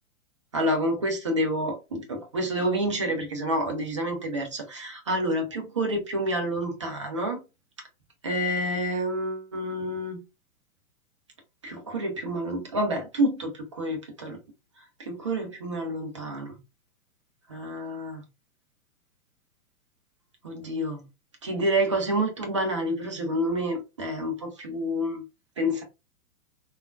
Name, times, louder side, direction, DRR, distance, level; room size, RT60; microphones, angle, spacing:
voice 1, 0.5-7.4 8.2-10.2 11.6-13.5 13.8-14.4 15.0-16.6 17.5-18.2 20.4-21.0 21.4-25.2 25.6-25.8, equal, 25° right, 0.4 m, -28 dB
3.4 x 2.3 x 2.4 m
figure-of-eight pair, 115°, 44 cm